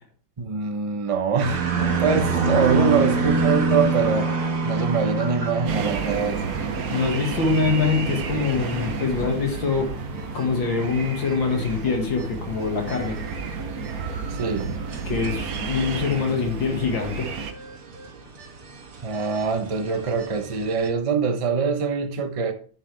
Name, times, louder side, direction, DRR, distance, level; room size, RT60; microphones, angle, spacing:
voice 1, 0.4-1.6 2.0-4.3 4.6-6.6 14.3-14.7 19.0-22.5, right 5 dB, 35° right, 0.5 m, -24 dB
sound 1, 1.4-20.9, right 4 dB, 90° right, 2.9 m, -28 dB
sound 2, 5.7-17.5, right 5 dB, 55° right, 1.2 m, -31 dB
voice 2, 6.9-9.9 10.3-13.2 15.1-17.3, left 4 dB, 65° left, 2.5 m, -24 dB
10.0 x 7.5 x 3.4 m
omnidirectional pair, 2.3 m